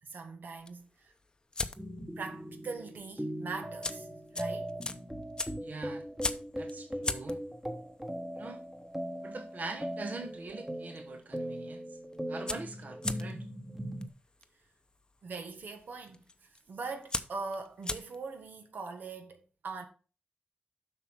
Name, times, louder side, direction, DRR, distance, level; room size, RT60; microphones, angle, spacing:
voice 1, 0.0-1.1 2.2-4.1 4.3-4.7 15.2-19.9, right 4 dB, 90° right, 1.4 m, -42 dB
sound 1, 0.6-2.1 2.4-2.7 3.0-3.1 3.6-10.6 10.8-11.4 11.7-11.8 12.0-18.4, left 3 dB, 25° left, 0.6 m, -39 dB
sound 2, 1.8-14.1, equal, 10° right, 1.1 m, -39 dB
voice 2, 5.6-6.0 6.5-7.4 8.4-8.6 9.2-11.9 12.3-13.4, right 3 dB, 60° right, 1.1 m, -43 dB
7.8 x 6.0 x 4.6 m
wide cardioid pair, 145°, 3 cm